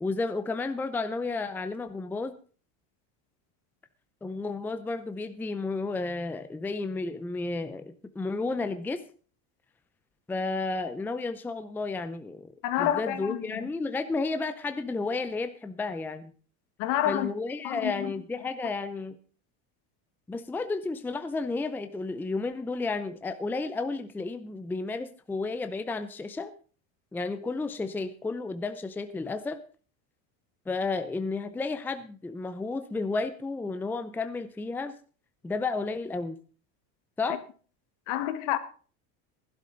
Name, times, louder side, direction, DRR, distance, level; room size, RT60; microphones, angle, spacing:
voice 1, 0.0-2.4 4.2-9.0 10.3-12.5 12.8-16.3 17.1-19.2 20.3-26.5 27.1-29.6 30.7-34.9 35.4-36.4 37.2-37.4, left 3 dB, 5° left, 0.5 m, -32 dB
voice 2, 12.6-13.7 16.8-17.3 17.6-18.1 37.3-37.4 38.1-38.6, left 12 dB, 65° left, 1.6 m, -28 dB
15.5 x 11.5 x 3.9 m
cardioid pair, 155°, 36 cm